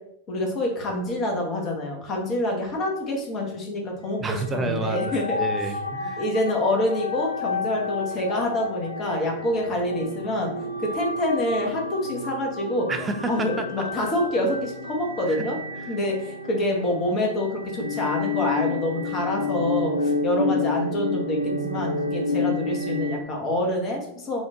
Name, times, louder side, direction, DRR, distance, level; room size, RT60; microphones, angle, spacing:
voice 1, 0.3-5.4 6.2-10.5 10.8-12.9 13.3-15.6 15.9-24.4, left 1 dB, 30° left, 1 dB, 1.0 m, -26 dB
voice 2, 4.2-6.2 12.9-13.9 15.3-15.5, right 3 dB, 15° right, 6 dB, 0.5 m, -30 dB
sound 1, 4.3-23.2, left 3 dB, 85° left, 0.4 m, -30 dB
3.6 x 2.5 x 3.6 m, 0.81 s
figure-of-eight pair, 90°, 0 cm